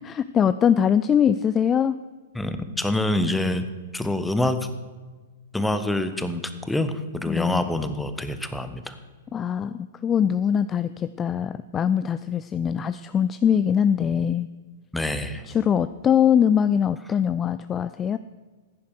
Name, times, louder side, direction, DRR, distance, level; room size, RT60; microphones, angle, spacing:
voice 1, 0.0-1.9 7.3-7.7 9.3-14.5 15.5-18.2, left 8 dB, 20° left, 13 dB, 0.4 m, -22 dB
voice 2, 2.3-3.6 3.9-4.6 5.5-8.9 14.9-15.4, left 1 dB, 5° left, 10 dB, 1.1 m, -26 dB
15.0 x 10.0 x 6.5 m, 1.4 s
figure-of-eight pair, 105°, 0 cm